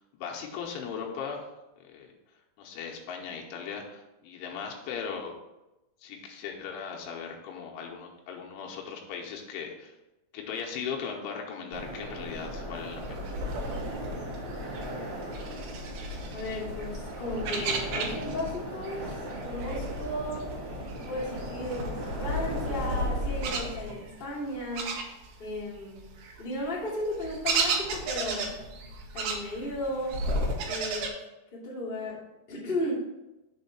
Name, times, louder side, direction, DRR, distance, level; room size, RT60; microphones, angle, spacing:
voice 1, 0.1-1.5 1.8-2.1 2.6-5.3 6.0-9.9 10.3-13.2, left 6 dB, 80° left, 0 dB, 3.3 m, -38 dB
sound 1, 11.7-23.6, equal, 40° right, 2.1 m, -38 dB
sound 2, 12.8-18.6 18.8-25.6 26.0-31.1, right 2 dB, 75° right, 2.6 m, -34 dB
voice 2, 16.3-20.4 21.0-24.9 25.4-26.1 26.4-28.5 29.1-30.2 30.7-31.1 31.5-32.9, left 1 dB, 25° left, -8 dB, 1.1 m, -35 dB
7.3 x 3.7 x 5.7 m, 1.0 s
omnidirectional pair, 5.6 m